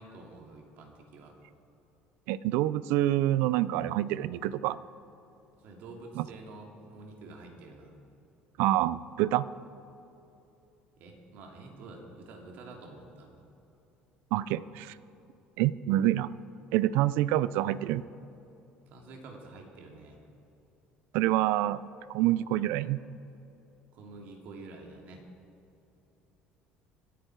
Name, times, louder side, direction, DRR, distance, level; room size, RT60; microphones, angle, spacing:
voice 1, 0.0-1.4 5.6-8.0 11.0-13.3 18.9-20.2 23.9-25.2, right 3 dB, 60° right, 1 dB, 2.5 m, -48 dB
voice 2, 2.3-4.8 6.2-6.3 8.6-9.5 14.3-14.9 15.6-16.3 16.7-18.0 21.1-21.8 22.1-23.0, right 14 dB, 80° right, 17 dB, 0.4 m, -27 dB
25.0 x 9.2 x 4.7 m, 2.9 s
cardioid pair, 150°, 3 cm